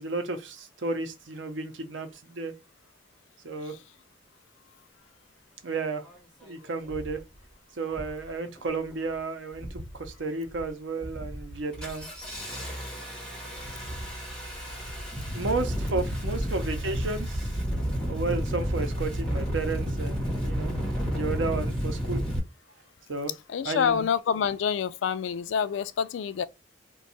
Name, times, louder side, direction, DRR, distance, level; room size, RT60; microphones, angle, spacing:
voice 1, 0.0-2.5 3.4-3.8 5.6-6.0 6.4-7.2 7.8-12.1 15.1-17.5 18.1-22.2 23.1-23.3 23.6-24.1, right 3 dB, 85° right, 0.7 m, -32 dB
Engine starting, 6.1-6.2 6.9-7.2 7.9-8.2 8.6-9.1 9.5-10.1 10.5-10.7 11.0-22.4, equal, 5° left, 1.3 m, -31 dB
voice 2, 23.5-26.4, left 7 dB, 85° left, 0.3 m, -27 dB
2.6 x 2.3 x 4.0 m
head